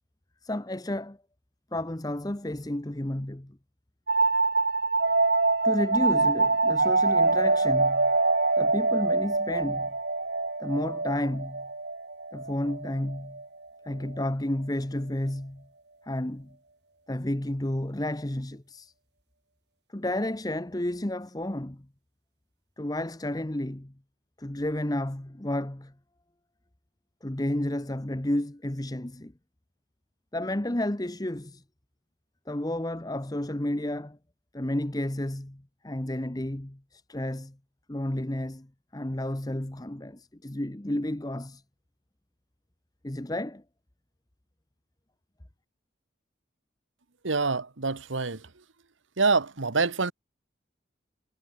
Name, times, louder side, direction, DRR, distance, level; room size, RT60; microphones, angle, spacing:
voice 1, 0.4-1.2 1.7-3.6 5.6-8.1 8.6-9.9 10.6-11.7 12.3-13.4 13.8-15.7 16.1-16.5 17.1-18.9 19.9-21.9 22.8-23.9 24.4-25.9 27.2-29.3 30.3-31.6 32.5-34.2 34.5-37.6 37.9-38.7 38.9-41.6 43.0-43.6, left 1 dB, 20° left, 1.0 m, -31 dB
sound 1, 4.1-13.5, right 3 dB, 60° right, 2.3 m, -25 dB
voice 2, 47.2-48.5 49.2-50.1, right 4 dB, 85° right, 1.4 m, -26 dB
head